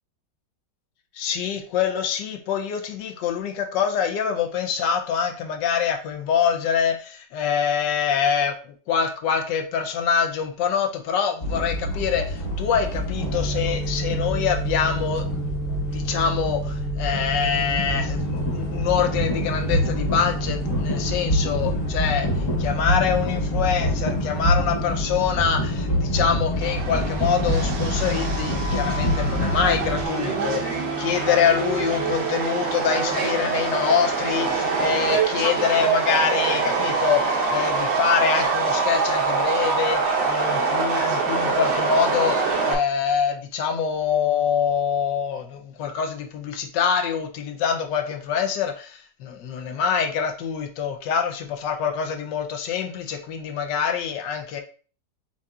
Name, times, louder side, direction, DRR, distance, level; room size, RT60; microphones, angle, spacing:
voice 1, 1.2-8.5 8.9-15.2 15.9-22.3 22.6-54.6, left 7 dB, 75° left, 4 dB, 1.3 m, -25 dB
sound 1, 11.4-30.0, left 1 dB, 45° left, 1.5 m, -26 dB
sound 2, 13.2-32.2, right 2 dB, 55° right, 0.6 m, -33 dB
Subway metro underground, 26.6-42.7, right 4 dB, 85° right, 1.6 m, -24 dB
7.3 x 2.7 x 2.3 m, 0.39 s
omnidirectional pair, 2.0 m